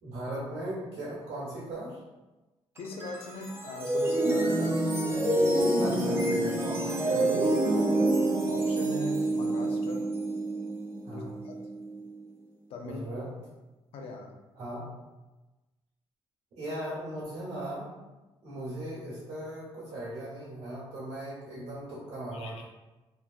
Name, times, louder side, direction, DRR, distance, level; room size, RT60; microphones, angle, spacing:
voice 1, 0.0-2.0 5.8-7.4 11.0-11.3 12.8-13.3 14.6-14.8 16.5-17.9 18.4-22.6, right 1 dB, 80° right, -8 dB, 1.4 m, -38 dB
voice 2, 2.8-5.6 8.4-10.1 11.1-11.5 12.7-13.0 13.9-14.3 22.3-22.6, left 2 dB, 75° left, 2 dB, 0.5 m, -41 dB
sound 1, 2.8-12.0, right 1 dB, 25° right, 0.5 m, -27 dB
3.2 x 2.2 x 2.4 m, 1.1 s
cardioid pair, 100°, 10 cm